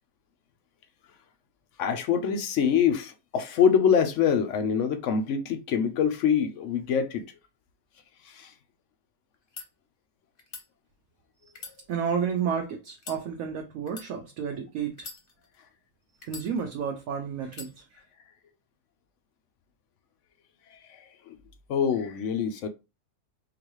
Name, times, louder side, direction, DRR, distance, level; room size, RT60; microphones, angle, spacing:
voice 1, 1.8-7.2 8.2-8.5 20.7-21.4 21.7-22.7, left 7 dB, 70° left, 0.7 m, -25 dB
sound 1, 9.3-9.7 10.4-10.7 11.5-12.4 13.0-13.2 13.9-14.1 14.9-15.6 16.2-16.9 17.5-17.7, left 5 dB, 40° left, 0.9 m, -43 dB
voice 2, 11.9-15.1 16.3-17.8, right 7 dB, 65° right, 1.0 m, -31 dB
3.8 x 2.5 x 3.0 m
omnidirectional pair, 1.7 m